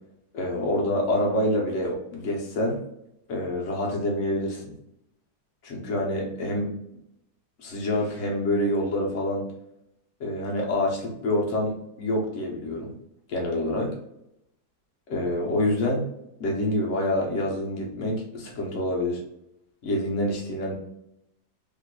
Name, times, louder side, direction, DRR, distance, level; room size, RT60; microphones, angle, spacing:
voice 1, 0.3-2.8 3.3-4.7 5.6-6.7 7.6-9.5 10.2-12.9 13.3-13.9 15.1-16.1 16.4-19.2 19.8-20.7, left 1 dB, 55° left, -1 dB, 1.1 m, -27 dB
3.7 x 2.7 x 2.3 m, 0.79 s
omnidirectional pair, 1.8 m